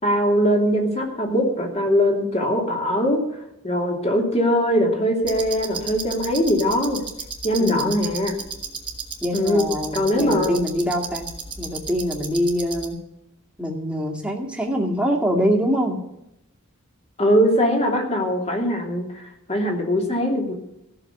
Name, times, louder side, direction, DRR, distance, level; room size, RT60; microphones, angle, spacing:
voice 1, 0.0-3.2 3.6-7.0 7.4-8.3 9.3-9.6 9.9-10.6 17.2-19.2 19.5-20.5, equal, 30° left, 1 dB, 2.9 m, -21 dB
sound 1, 5.2-12.9, right 5 dB, 20° right, 1.8 m, -34 dB
voice 2, 7.6-8.0 9.2-11.3 11.6-13.0 13.6-16.0, equal, 5° right, 0 dB, 2.2 m, -24 dB
15.0 x 6.6 x 9.9 m, 0.85 s
head